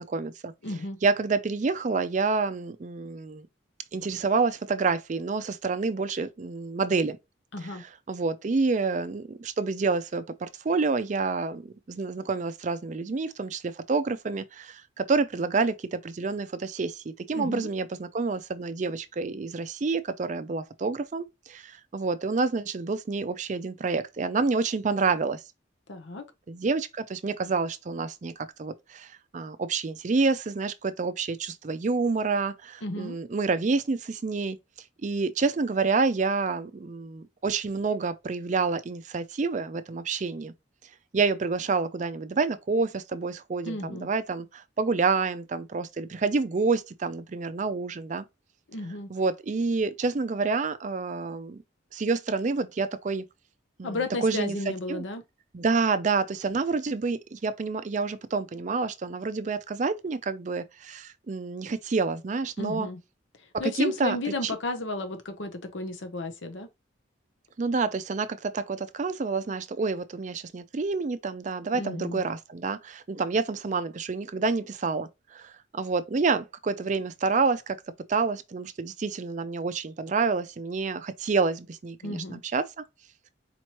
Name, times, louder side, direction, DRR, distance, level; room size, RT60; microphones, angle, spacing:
voice 1, 0.0-0.5 1.0-3.5 3.9-7.2 7.6-25.4 26.5-34.6 35.0-40.5 41.1-48.2 49.1-51.6 51.9-53.3 53.8-55.0 55.5-62.9 63.6-64.5 67.6-77.8 78.1-82.8, right 4 dB, 40° right, 0.4 m, -28 dB
voice 2, 0.6-1.0 7.5-7.8 17.3-17.7 25.9-26.2 32.8-33.2 43.6-44.1 48.7-49.1 53.8-55.2 62.6-63.0 63.6-66.7 71.7-72.2 82.0-82.4, left 2 dB, 70° left, 0.8 m, -33 dB
4.3 x 3.0 x 2.9 m
head